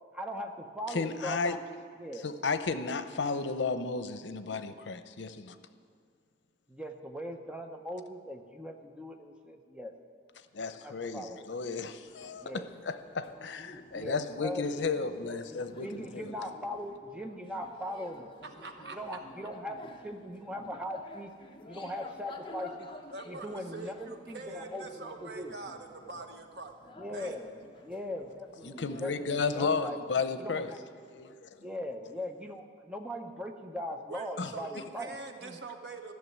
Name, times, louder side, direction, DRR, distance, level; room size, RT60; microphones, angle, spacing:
voice 1, 0.1-1.6 2.0-2.3 6.7-9.9 10.8-11.5 12.4-12.7 13.9-14.7 15.5-18.3 18.9-21.3 21.7-22.9 23.2-25.6 27.0-27.5 27.8-30.0 30.4-30.8 31.6-35.1 35.4-35.6, equal, 5° right, 4 dB, 0.8 m, -40 dB
voice 2, 0.9-1.6 2.2-5.6 10.5-16.3 28.6-30.7 31.1-31.5 34.4-34.5, left 4 dB, 85° left, 11 dB, 0.7 m, -33 dB
sound 1, 12.0-29.9, left 2 dB, 25° left, 0.8 m, -52 dB
voice 3, 18.4-19.3 23.1-26.7 27.1-27.4 34.1-36.1, right 3 dB, 75° right, 5 dB, 1.2 m, -44 dB
14.0 x 6.6 x 9.4 m, 2.1 s
head